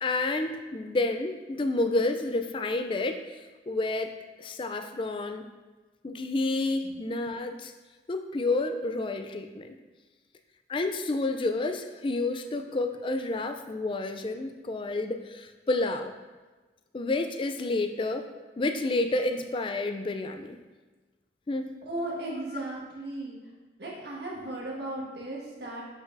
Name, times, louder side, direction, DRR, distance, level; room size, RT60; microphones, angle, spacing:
voice 1, 0.0-3.2 3.7-4.1 4.4-5.5 6.0-7.7 8.1-9.7 10.7-16.1 16.9-18.3 18.6-20.6 21.5-21.8, left 2 dB, 30° left, 7 dB, 0.4 m, -29 dB
voice 2, 21.9-23.4 23.8-25.8, right 1 dB, 70° right, -4 dB, 1.7 m, -36 dB
7.3 x 6.1 x 2.6 m, 1.3 s
head